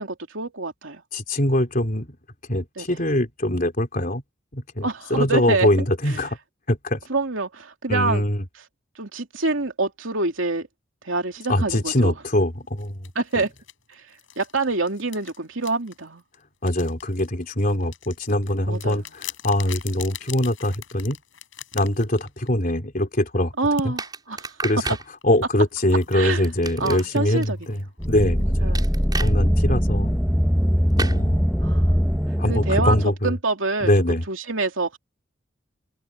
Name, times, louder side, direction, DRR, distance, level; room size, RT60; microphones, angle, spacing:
voice 1, 0.0-1.0 2.8-2.9 4.8-5.7 6.1-6.2 7.1-8.2 9.0-10.7 11.0-12.1 13.1-13.5 13.9-14.0 14.4-16.2 18.7-19.1 23.6-24.5 26.1-26.5 26.8-27.8 28.6-29.0 31.6-32.0 32.5-33.0 33.2-33.9 34.3-35.0, right 3 dB, 75° right, 2.9 m, -26 dB
voice 2, 1.1-2.1 2.5-4.2 4.5-6.4 6.7-7.0 7.9-8.4 11.5-13.1 13.3-13.4 16.6-21.2 21.7-23.5 23.8-23.9 24.6-25.0 25.2-28.8 29.2-30.2 31.0-31.4 32.4-33.3 33.8-34.2, left 1 dB, 45° left, 3.8 m, -23 dB
sound 1, 12.8-22.7 23.8-23.9 25.2-29.1, left 8 dB, 70° left, 6.5 m, -42 dB
sound 2, 24.0-25.1 26.4-27.5 28.7-29.3 31.0-31.2, right 3 dB, 20° right, 5.7 m, -31 dB
sound 3, 28.0-33.1, equal, ahead, 1.0 m, -21 dB
head